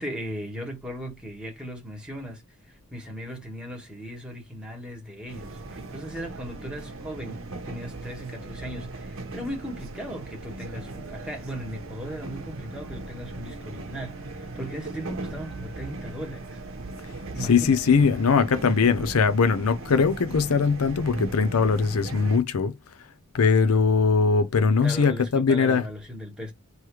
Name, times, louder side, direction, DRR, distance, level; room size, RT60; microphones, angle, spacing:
voice 1, 0.0-2.4 2.9-7.4 7.6-16.6 17.3-17.8 24.8-26.5, equal, 5° right, 1.6 m, -37 dB
sound 1, 5.3-22.4, right 2 dB, 65° right, 0.9 m, -38 dB
voice 2, 17.4-22.7 23.3-25.8, left 5 dB, 80° left, 0.6 m, -21 dB
3.1 x 3.1 x 4.7 m
head